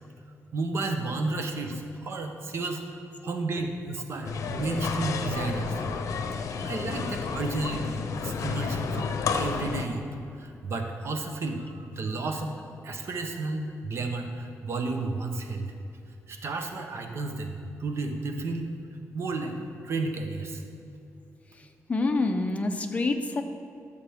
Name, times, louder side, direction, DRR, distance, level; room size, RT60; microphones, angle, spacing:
voice 1, 0.5-2.8 3.2-5.8 6.6-10.0 10.3-12.6 12.8-15.7 16.3-18.7 19.1-19.6 19.8-20.6, right 3 dB, 50° right, 5 dB, 0.8 m, -32 dB
sound 1, 4.2-9.9, left 5 dB, 75° left, 0.7 m, -31 dB
voice 2, 21.9-23.4, left 3 dB, 25° left, 5 dB, 0.7 m, -26 dB
14.5 x 6.8 x 3.6 m, 2.5 s
wide cardioid pair, 150°, 6 cm